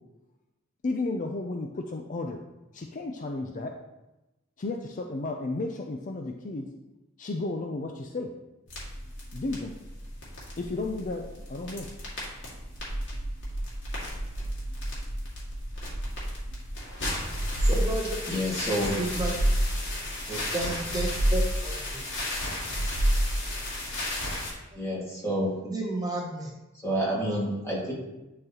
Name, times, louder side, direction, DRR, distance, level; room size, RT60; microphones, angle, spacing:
voice 1, 0.8-2.4 2.7-3.7 4.6-6.7 7.2-8.3 9.3-9.7 10.6-11.9, left 2 dB, 40° left, 3 dB, 0.5 m, -33 dB
sound 1, 8.7-24.5, equal, 65° left, 2.1 m, -31 dB
voice 2, 17.6-18.1 19.0-19.3 20.5-22.0 24.7-24.8 25.6-26.5 27.3-27.4, right 2 dB, 20° right, -1 dB, 0.8 m, -32 dB
voice 3, 18.3-18.9 20.3-20.4 24.7-25.5 26.8-27.9, equal, 15° left, -5 dB, 2.0 m, -29 dB
10.5 x 3.9 x 2.9 m, 1.0 s
head